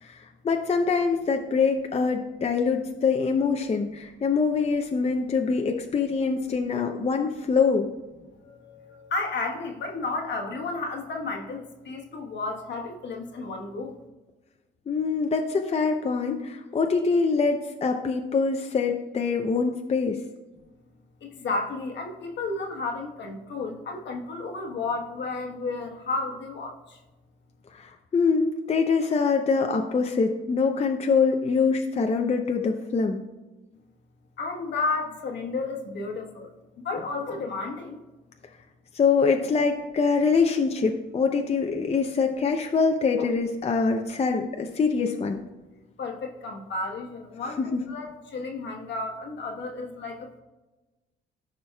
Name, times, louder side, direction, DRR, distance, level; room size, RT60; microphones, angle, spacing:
voice 1, 0.0-7.9 14.9-20.2 27.7-33.2 38.9-45.4 47.6-47.8, left 5 dB, 30° left, 4 dB, 0.6 m, -24 dB
voice 2, 8.4-13.9 21.2-26.7 34.4-36.5 36.8-38.0 43.2-43.3 46.0-50.2, left 3 dB, 65° left, 2 dB, 1.2 m, -32 dB
13.0 x 5.2 x 2.3 m, 1.1 s
cardioid pair, 90°, 20 cm